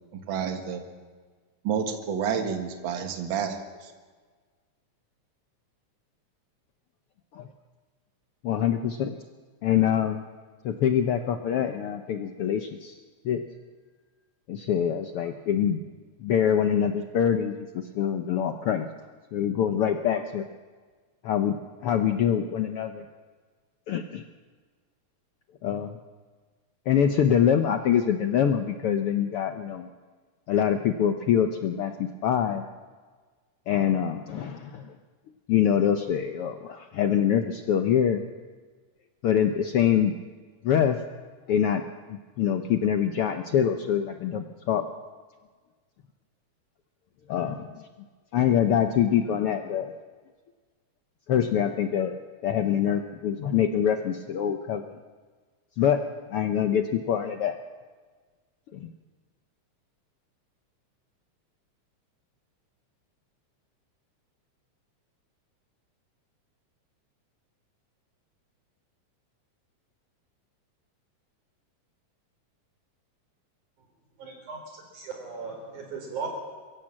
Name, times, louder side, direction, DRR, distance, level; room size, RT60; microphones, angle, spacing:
voice 1, 0.1-0.8 1.6-3.6 3.8-3.9, right 7 dB, 45° right, 5 dB, 2.1 m, -29 dB
voice 2, 8.4-9.2 9.6-10.2 10.6-12.9 13.2-13.4 14.5-15.8 16.2-18.9 19.3-20.4 21.2-21.6 21.8-23.0 23.9-24.2 25.6-26.0 26.9-29.9 30.5-32.6 33.7-34.9 35.5-38.2 39.2-40.1 40.6-41.0 41.5-41.8 42.4-44.8 47.3-47.8 48.3-49.9 51.3-52.2 52.4-54.9 55.8-56.0 56.3-57.5 58.7-58.9, left 9 dB, 70° left, 6 dB, 1.4 m, -24 dB
voice 3, 74.2-74.6 74.9-76.3, right 5 dB, 85° right, 2 dB, 5.7 m, -37 dB
23.5 x 15.0 x 7.5 m, 1.5 s
omnidirectional pair, 3.4 m